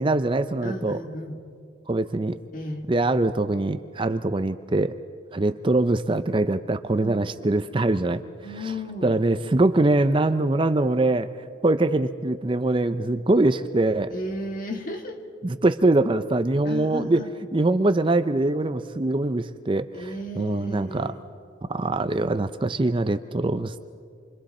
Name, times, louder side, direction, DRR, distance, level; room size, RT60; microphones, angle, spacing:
voice 1, 0.0-1.0 1.9-2.4 2.9-5.0 5.3-8.2 8.5-8.7 9.0-11.3 11.6-14.1 15.4-17.2 17.5-21.1 21.7-23.8, right 2 dB, 25° right, 11 dB, 0.5 m, -23 dB
voice 2, 0.6-1.4 2.5-2.9 7.0-7.2 8.4-9.1 14.1-15.2 16.6-17.3 19.9-21.2, left 1 dB, 40° left, 3 dB, 1.8 m, -34 dB
28.0 x 24.5 x 4.3 m, 2.3 s
head